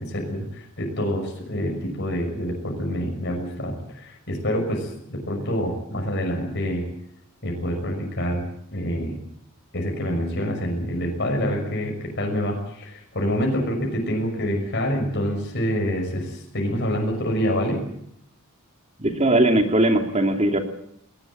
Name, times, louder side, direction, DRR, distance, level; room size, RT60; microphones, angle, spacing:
voice 1, 0.0-6.8 7.4-8.4 8.7-9.2 9.7-17.8, equal, 50° left, 1 dB, 6.2 m, -26 dB
voice 2, 19.0-20.6, right 1 dB, 30° right, 5 dB, 2.7 m, -19 dB
20.0 x 19.5 x 8.9 m, 0.73 s
head